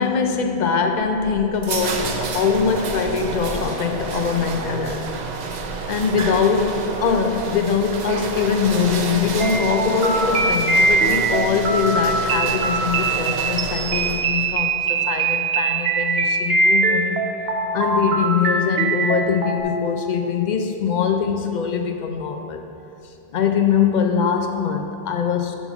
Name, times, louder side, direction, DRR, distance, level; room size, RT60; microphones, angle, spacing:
voice 1, 0.0-5.1 5.9-17.2 17.7-22.6 23.3-25.6, left 6 dB, 55° left, 5 dB, 0.6 m, -22 dB
sound 1, 1.0-14.5, right 4 dB, 55° right, 0.6 m, -29 dB
sound 2, 9.4-19.6, right 3 dB, 75° right, 0.9 m, -22 dB
6.9 x 4.1 x 6.0 m, 2.7 s
omnidirectional pair, 1.0 m